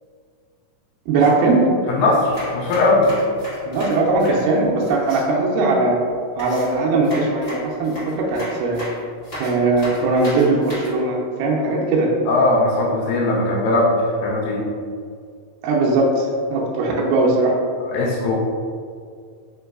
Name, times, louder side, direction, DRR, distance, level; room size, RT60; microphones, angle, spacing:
voice 1, 1.1-1.7 3.7-6.0 6.4-8.8 9.3-12.1 15.6-17.5, right 3 dB, 80° right, -3 dB, 2.1 m, -19 dB
voice 2, 1.9-3.1 12.3-13.9 14.2-14.7 17.8-18.4, left 2 dB, 85° left, -4 dB, 1.6 m, -19 dB
sound 1, 2.1-5.2 6.4-10.9, left 1 dB, 60° left, 0.6 m, -35 dB
5.1 x 3.0 x 2.4 m, 2.2 s
omnidirectional pair, 3.9 m